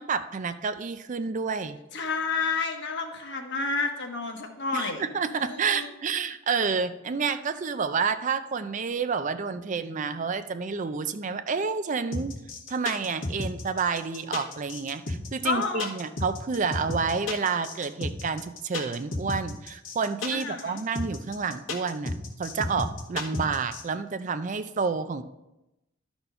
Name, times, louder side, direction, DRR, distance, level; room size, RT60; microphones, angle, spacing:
voice 1, 0.0-1.8 4.7-12.3 12.7-22.1 22.4-25.2, right 5 dB, 40° right, 10 dB, 0.4 m, -29 dB
voice 2, 1.9-5.1 5.3-5.9 15.4-15.9 20.3-20.8, left 4 dB, 60° left, 4 dB, 1.2 m, -30 dB
sound 1, 12.1-23.8, left 2 dB, 75° left, 1.8 m, -32 dB
12.0 x 4.4 x 5.5 m, 0.94 s
head